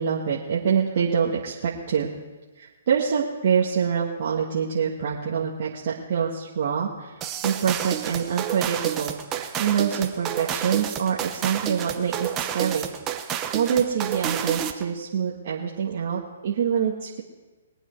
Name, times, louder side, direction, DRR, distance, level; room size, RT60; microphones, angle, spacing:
voice 1, 0.0-2.1 2.6-12.8 13.5-17.2, right 7 dB, 55° right, -4 dB, 1.7 m, -25 dB
sound 1, 7.2-14.9, right 10 dB, 25° right, 1.0 m, -29 dB
21.5 x 9.1 x 4.6 m, 1.2 s
hypercardioid pair, 135°, 0 cm